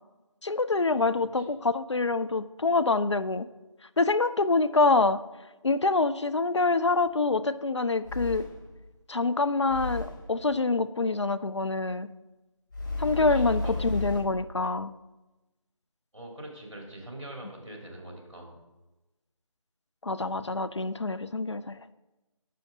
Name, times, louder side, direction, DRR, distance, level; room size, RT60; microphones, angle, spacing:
voice 1, 0.4-3.5 4.0-5.2 5.6-8.5 9.1-12.1 13.0-14.9 20.0-21.8, left 3 dB, 60° left, 14 dB, 0.4 m, -26 dB
voice 2, 0.9-1.5 13.1-14.1 16.1-18.6, right 1 dB, 55° right, 0 dB, 2.7 m, -43 dB
sound 1, 7.1-7.2 8.0-8.7 9.7-10.3 12.7-14.2, left 2 dB, 35° left, 1.2 m, -33 dB
10.0 x 6.3 x 3.7 m, 1.1 s
figure-of-eight pair, 165°, 17 cm